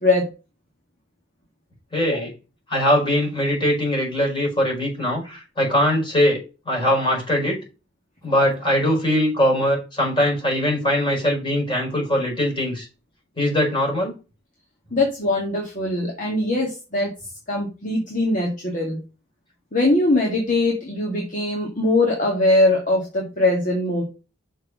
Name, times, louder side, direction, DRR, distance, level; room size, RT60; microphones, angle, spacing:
voice 1, 1.9-2.3 2.7-6.4 6.6-7.6 8.2-12.9 13.3-14.1, left 1 dB, 25° left, -1 dB, 5.1 m, -21 dB
voice 2, 14.9-17.1 17.5-19.0 19.7-24.0, left 2 dB, 45° left, -1 dB, 2.0 m, -21 dB
6.4 x 4.6 x 6.1 m, 0.30 s
head